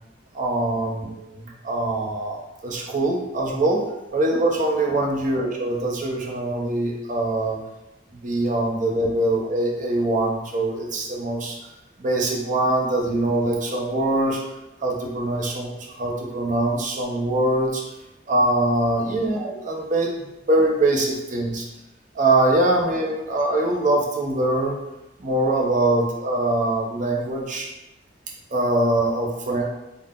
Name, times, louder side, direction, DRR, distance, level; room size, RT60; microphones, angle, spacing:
voice 1, 0.3-3.8 4.1-7.6 8.2-11.6 12.0-14.4 14.8-17.8 18.3-20.1 20.5-21.6 22.1-24.8 25.2-27.7 28.5-29.6, right 2 dB, 45° right, -1 dB, 0.6 m, -23 dB
3.8 x 2.1 x 3.6 m, 0.94 s
head